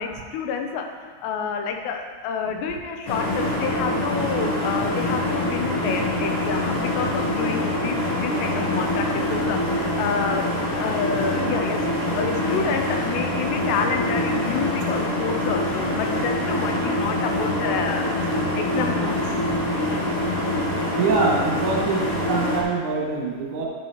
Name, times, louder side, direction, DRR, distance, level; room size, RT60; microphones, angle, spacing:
voice 1, 0.0-11.8 12.2-18.1 18.5-19.3 19.9-20.0 23.5-23.6, left 6 dB, 85° left, 3 dB, 2.9 m, -29 dB
sound 1, 3.1-22.6, left 1 dB, 70° left, 1.3 m, -25 dB
voice 2, 21.0-23.7, right 4 dB, 55° right, -4 dB, 2.8 m, -24 dB
12.0 x 7.3 x 3.1 m, 1.5 s
omnidirectional pair, 5.0 m